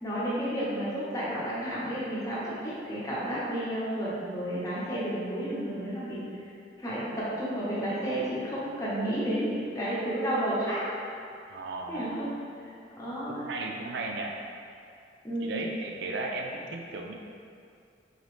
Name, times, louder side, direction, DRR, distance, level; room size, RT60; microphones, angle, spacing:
voice 1, 0.0-6.2 6.8-10.8 11.9-12.3 12.6-12.7 13.0-13.4 15.2-15.6, right 1 dB, 20° left, -9 dB, 0.9 m, -31 dB
voice 2, 11.5-12.3 13.3-14.4 15.4-17.1, right 2 dB, 70° right, 1 dB, 0.4 m, -35 dB
3.9 x 3.1 x 3.1 m, 2.4 s
head